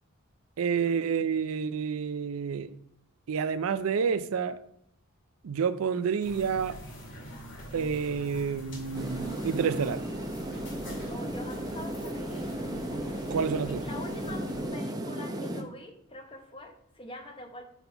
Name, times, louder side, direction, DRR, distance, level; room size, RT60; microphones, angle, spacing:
voice 1, 0.6-2.8 3.3-4.6 5.4-6.8 7.7-10.0 13.3-13.8, right 6 dB, 75° right, 0.4 m, -29 dB
sound 1, 6.2-14.7, equal, 55° left, 2.4 m, -44 dB
sound 2, 8.9-15.6, right 1 dB, 20° right, 0.6 m, -35 dB
voice 2, 11.1-12.6 13.5-17.6, left 2 dB, 25° left, 1.0 m, -45 dB
6.9 x 4.1 x 5.7 m
head